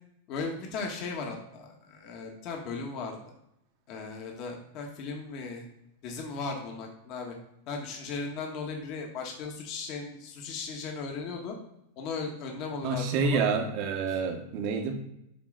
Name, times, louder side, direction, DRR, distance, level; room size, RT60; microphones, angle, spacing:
voice 1, 0.3-3.2 3.9-5.6 6.0-7.3 7.7-11.6 12.0-13.4 14.1-14.2, left 4 dB, 50° left, 1 dB, 1.5 m, -37 dB
voice 2, 12.8-14.9, right 5 dB, 50° right, 4 dB, 1.2 m, -28 dB
7.0 x 3.8 x 3.9 m, 0.80 s
hypercardioid pair, 110°, 0 cm